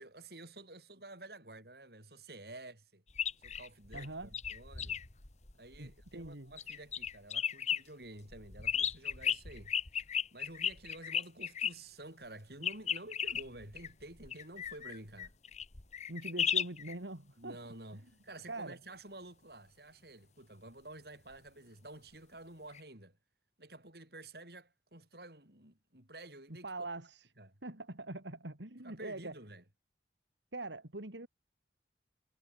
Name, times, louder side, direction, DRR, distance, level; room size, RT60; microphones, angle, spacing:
voice 1, 0.0-3.0 3.4-5.0 5.5-9.7 10.3-15.3 17.4-23.2 23.6-26.9 27.4-27.6 28.8-29.6, right 2 dB, 60° right, 7.0 m, -51 dB
sound 1, 3.1-6.3 6.6-7.8 8.3-11.7 12.6-16.9 22.7-22.8, left 8 dB, 40° left, 1.4 m, -35 dB
voice 2, 3.9-4.4 5.8-6.5 16.1-17.6 18.5-18.8 26.6-27.3 27.6-29.3 30.5-31.3, right 2 dB, 90° right, 3.1 m, -43 dB
head